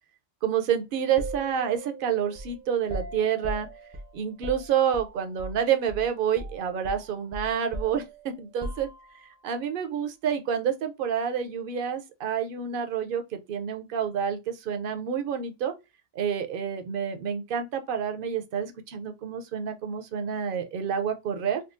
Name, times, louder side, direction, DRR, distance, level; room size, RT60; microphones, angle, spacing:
voice 1, 0.4-3.7 4.1-8.9 9.2-15.7 16.1-21.6, right 8 dB, 65° right, 0.7 m, -28 dB
sound 1, 1.2-5.6 5.9-6.1 6.4-9.3, right 2 dB, 30° right, 0.6 m, -39 dB
3.6 x 2.3 x 2.5 m
omnidirectional pair, 1.0 m